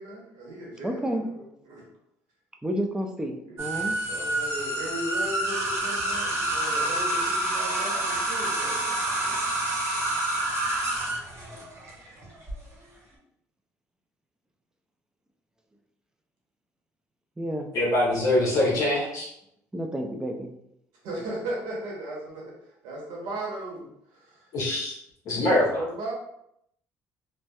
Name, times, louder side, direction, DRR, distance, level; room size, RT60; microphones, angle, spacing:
voice 1, 0.0-1.8 3.5-9.5 21.0-24.5 25.4-26.1, right 1 dB, 80° right, -2 dB, 0.9 m, -37 dB
voice 2, 0.8-1.2 2.6-4.0 17.4-17.7 19.7-20.6, equal, 10° right, 3 dB, 0.4 m, -30 dB
sound 1, 3.6-12.5, right 1 dB, 40° right, 0.9 m, -28 dB
voice 3, 17.7-19.3 24.5-24.9 25.3-25.8, left 1 dB, 60° left, -5 dB, 0.7 m, -23 dB
2.7 x 2.0 x 2.2 m, 0.77 s
supercardioid pair, 75°, 7 cm